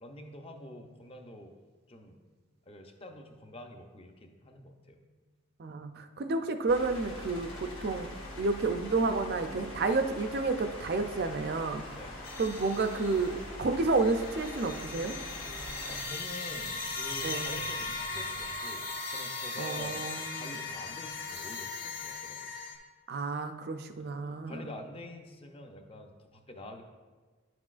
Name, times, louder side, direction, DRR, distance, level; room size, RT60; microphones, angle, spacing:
voice 1, 0.0-1.6 1.9-2.2 2.6-5.0 11.9-12.1 15.9-22.5 24.0-24.1 24.5-26.8, left 1 dB, 25° left, 4 dB, 0.6 m, -47 dB
voice 2, 5.6-8.1 8.4-11.8 12.4-15.1 17.2-17.6 19.6-20.6 23.1-24.7, right 3 dB, 45° right, 7 dB, 0.4 m, -30 dB
sound 1, 6.7-16.0, left 1 dB, 85° left, 1.7 m, -43 dB
sound 2, 11.8-18.6, equal, 65° left, 1.7 m, -53 dB
sound 3, 12.2-13.4 13.8-22.7, left 3 dB, 45° left, 1.1 m, -38 dB
10.0 x 6.0 x 2.4 m, 1.4 s
head